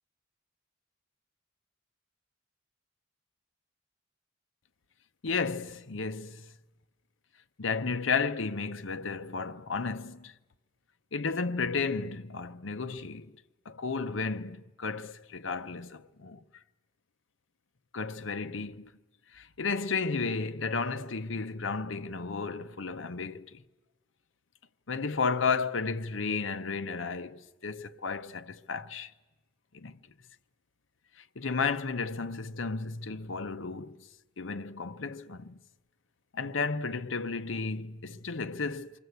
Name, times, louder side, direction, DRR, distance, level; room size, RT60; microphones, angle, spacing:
voice 1, 5.2-6.5 7.6-10.3 11.1-13.3 13.7-16.4 17.9-18.9 19.3-23.6 24.9-29.1 29.7-29.9 31.4-34.0 34.4-35.6 36.3-38.9, left 4 dB, 85° left, 0.8 m, -33 dB
27.5 x 24.0 x 8.1 m
head